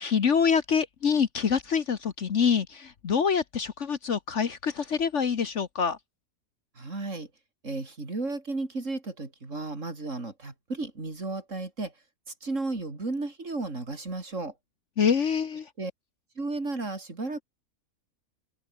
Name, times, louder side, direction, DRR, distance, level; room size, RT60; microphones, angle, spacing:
voice 1, 0.0-6.0 15.0-15.7, left 6 dB, 55° left, 1.4 m, -26 dB
voice 2, 6.8-7.3 7.6-11.9 12.3-14.5 15.8-15.9 16.4-17.4, right 3 dB, 50° right, 4.2 m, -34 dB
omnidirectional pair, 1.6 m